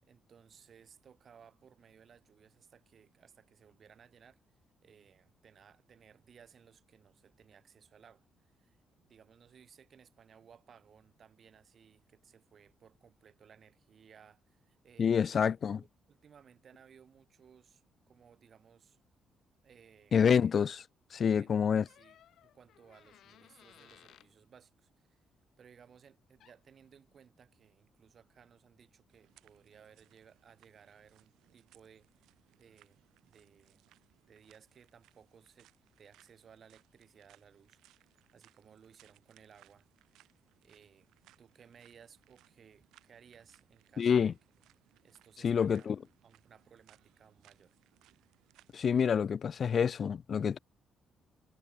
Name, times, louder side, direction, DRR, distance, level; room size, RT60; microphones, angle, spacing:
voice 1, 0.0-15.5 15.7-19.0 19.6-20.2 21.2-22.2 22.4-25.2 25.6-32.2 32.5-33.9 34.3-40.2 40.6-41.1 41.4-44.4 45.0-45.9 46.2-47.7, right 7 dB, 50° right, 6.2 m, -61 dB
voice 2, 15.0-15.8 20.1-20.8 21.1-21.8 44.0-44.3 45.4-46.0 48.7-50.6, left 7 dB, 50° left, 0.3 m, -27 dB
Door, 21.8-24.3 26.1-26.2 26.4-26.8, left 11 dB, 75° left, 4.6 m, -61 dB
sound 1, 29.1-48.8, right 15 dB, 90° right, 6.6 m, -67 dB
cardioid pair, 90°, 0 cm